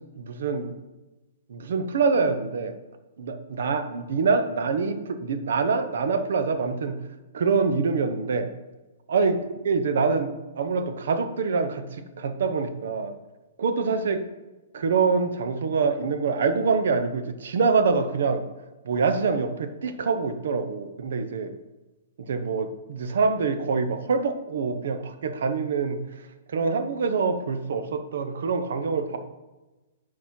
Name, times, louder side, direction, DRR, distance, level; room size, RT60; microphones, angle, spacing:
voice 1, 0.2-0.7 1.5-2.7 3.2-7.0 7.3-8.5 9.1-9.4 9.6-11.9 12.2-13.1 13.6-14.2 14.7-18.4 18.8-21.5 22.3-26.0 26.5-29.2, right 4 dB, 60° right, 9 dB, 0.8 m, -25 dB
9.5 x 4.3 x 4.4 m, 1.1 s
hypercardioid pair, 175°, 0 cm